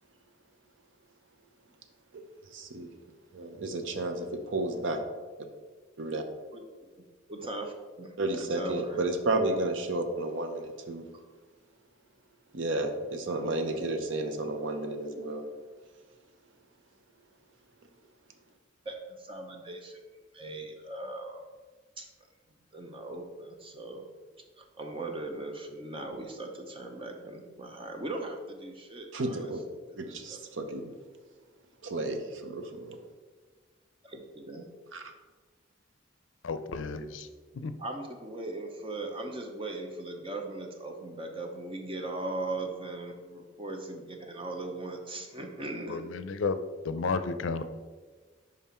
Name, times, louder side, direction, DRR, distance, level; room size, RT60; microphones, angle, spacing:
voice 1, 2.5-2.9 3.3-5.0 6.0-6.2 8.2-11.0 12.5-15.4 29.1-29.6 30.0-30.9 31.8-33.0 34.9-35.1, right 2 dB, 75° right, 6 dB, 0.7 m, -32 dB
voice 2, 7.3-9.1 18.8-20.0 20.3-21.4 22.0-22.1 22.7-24.1 24.6-29.5 29.9-30.4 34.0-34.7 37.8-46.1 47.5-47.6, right 2 dB, 25° right, 3 dB, 0.7 m, -39 dB
voice 3, 36.4-37.3 37.5-37.7 45.9-46.6 46.8-47.6, left 4 dB, 80° left, 11 dB, 0.5 m, -32 dB
5.4 x 5.0 x 4.3 m, 1.4 s
head